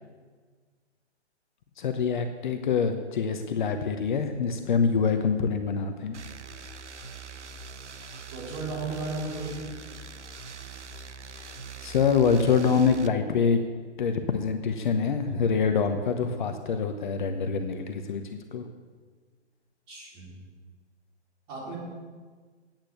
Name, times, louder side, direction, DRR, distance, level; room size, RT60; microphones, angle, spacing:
voice 1, 1.8-6.2 11.8-13.6 14.0-18.6, left 6 dB, 45° left, 7 dB, 0.9 m, -25 dB
sound 1, 6.1-13.1, right 4 dB, 90° right, 0.7 m, -43 dB
voice 2, 8.3-9.7 19.9-20.3 21.5-21.7, right 3 dB, 25° right, -4 dB, 4.1 m, -34 dB
10.0 x 8.9 x 7.0 m, 1.5 s
figure-of-eight pair, 130°, 34 cm